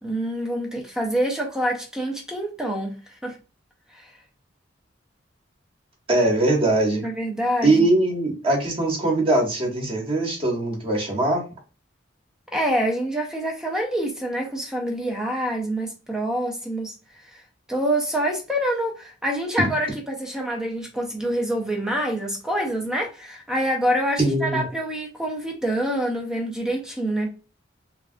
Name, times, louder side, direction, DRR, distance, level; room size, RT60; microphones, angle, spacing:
voice 1, 0.0-3.0 3.2-3.4 4.0-4.1 7.0-7.9 12.5-16.9 17.7-27.3, right 1 dB, 5° right, 0.5 m, -26 dB
voice 2, 6.1-7.0 7.6-11.4 24.2-24.6, right 2 dB, 30° right, 1.0 m, -21 dB
3.2 x 2.3 x 2.5 m
head